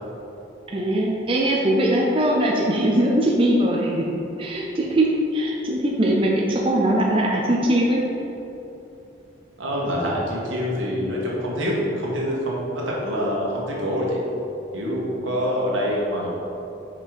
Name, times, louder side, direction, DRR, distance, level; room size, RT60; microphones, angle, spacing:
voice 1, 0.7-4.1 4.4-5.1 5.3-8.0, right 1 dB, 25° right, -3 dB, 0.6 m, -21 dB
voice 2, 9.6-14.2 14.7-16.3, equal, 80° right, -4 dB, 1.6 m, -25 dB
5.8 x 5.2 x 4.6 m, 2.9 s
head